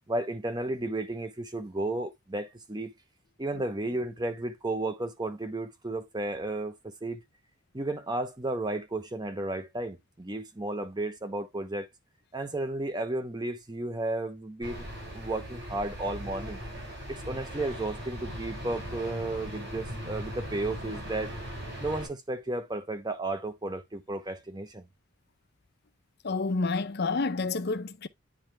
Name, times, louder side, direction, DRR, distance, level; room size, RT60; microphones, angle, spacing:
voice 1, 0.1-2.9 3.4-7.2 7.7-11.9 12.3-14.9 15.1-16.6 17.1-21.3 21.8-24.8, right 2 dB, 20° right, 0.9 m, -33 dB
sound 1, 14.6-22.1, equal, 55° right, 5.1 m, -39 dB
voice 2, 26.2-28.1, left 3 dB, 50° left, 0.6 m, -29 dB
9.6 x 3.3 x 3.3 m
head